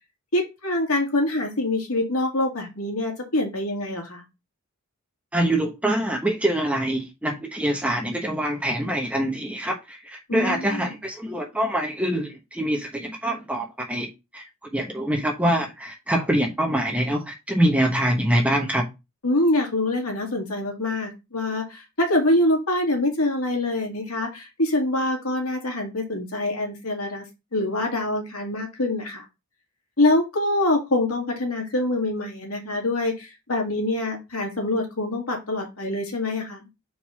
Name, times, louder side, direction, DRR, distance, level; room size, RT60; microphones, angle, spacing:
voice 1, 0.3-4.2 10.3-11.0 19.2-27.2 27.5-29.2 30.0-36.6, left 1 dB, 80° left, 2 dB, 2.3 m, -25 dB
voice 2, 5.3-14.1 14.3-14.4 14.7-18.9, right 1 dB, 5° right, 1 dB, 1.0 m, -24 dB
4.6 x 3.9 x 5.7 m, 0.24 s
head